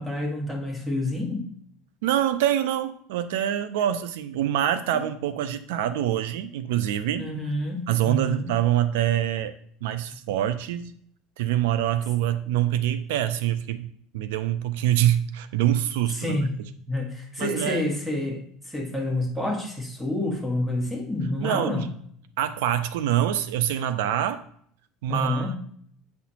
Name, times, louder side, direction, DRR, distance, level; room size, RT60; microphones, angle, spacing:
voice 1, 0.0-1.5 7.2-8.5 16.1-16.5 16.9-21.9 25.1-25.5, left 1 dB, 5° right, 1 dB, 1.3 m, -28 dB
voice 2, 2.0-7.3 7.9-9.5 9.8-11.0 11.4-16.4 17.4-17.8 21.4-21.9 22.4-24.4 25.0-25.6, right 11 dB, 85° right, 13 dB, 0.3 m, -25 dB
8.2 x 4.3 x 2.8 m, 0.64 s
supercardioid pair, 120°, 0 cm